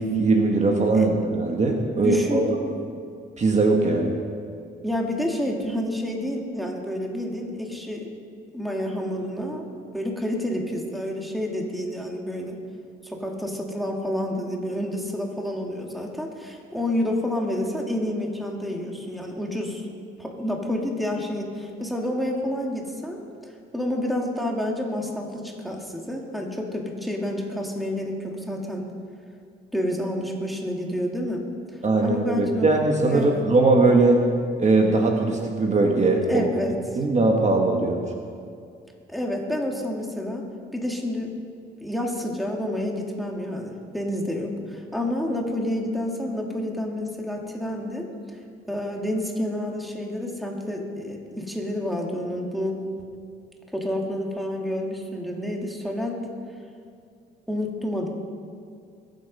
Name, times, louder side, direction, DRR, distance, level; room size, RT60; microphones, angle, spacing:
voice 1, 0.0-2.5 3.4-4.1 31.8-34.2 34.6-36.5 37.0-38.0, right 3 dB, 35° right, 1 dB, 1.7 m, -20 dB
voice 2, 2.0-2.8 4.8-8.1 8.5-9.7 9.9-12.6 13.0-19.8 20.2-23.2 23.7-28.9 29.7-31.5 32.0-32.7 33.1-33.4 36.3-36.8 39.1-41.3 41.8-48.1 48.7-52.8 53.7-56.2 57.5-58.1, left 1 dB, ahead, 0 dB, 2.4 m, -29 dB
22.5 x 8.1 x 5.5 m, 2.4 s
cardioid pair, 90°, 20 cm